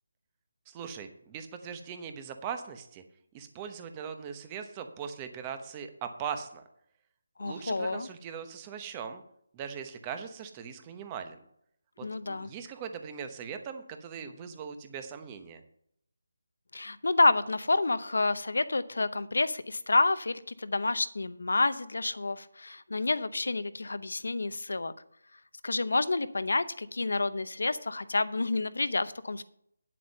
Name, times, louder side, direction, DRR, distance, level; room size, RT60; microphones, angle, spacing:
voice 1, 0.7-3.0 3.3-6.6 7.4-9.2 9.5-11.4 12.0-15.6, right 7 dB, 20° right, 8 dB, 0.9 m, -40 dB
voice 2, 7.4-8.1 12.0-12.5 16.7-24.9 25.6-29.4, left 3 dB, 80° left, 14 dB, 0.8 m, -29 dB
9.5 x 7.6 x 5.4 m, 0.71 s
figure-of-eight pair, 165°, 0 cm